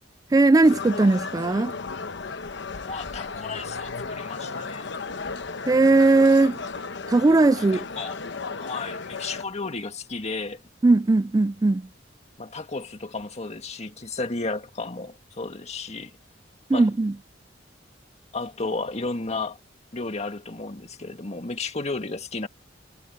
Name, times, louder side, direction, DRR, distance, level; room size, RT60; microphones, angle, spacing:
voice 1, 0.3-1.7 5.7-6.6 7.1-7.9 10.8-11.9 16.7-17.1, right 3 dB, 20° right, 0.3 m, -18 dB
sound 1, 0.6-9.4, left 4 dB, 65° left, 1.0 m, -35 dB
voice 2, 2.8-4.9 7.7-8.2 8.6-10.6 12.4-16.1 16.7-16.9 18.3-19.6 19.9-22.5, left 3 dB, 35° left, 1.9 m, -33 dB
head